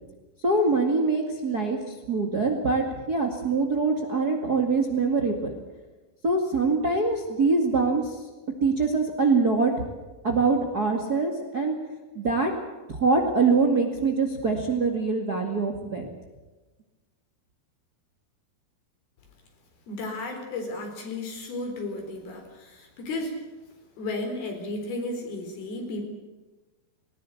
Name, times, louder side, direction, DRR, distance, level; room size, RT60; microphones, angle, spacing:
voice 1, 0.4-5.5 6.2-8.2 8.6-9.7 10.2-11.7 12.1-12.5 12.9-16.1, right 3 dB, 35° right, 3 dB, 1.8 m, -24 dB
voice 2, 19.9-23.3 24.0-26.1, left 2 dB, 65° left, 4 dB, 5.9 m, -33 dB
20.0 x 19.5 x 8.4 m, 1.2 s
omnidirectional pair, 4.7 m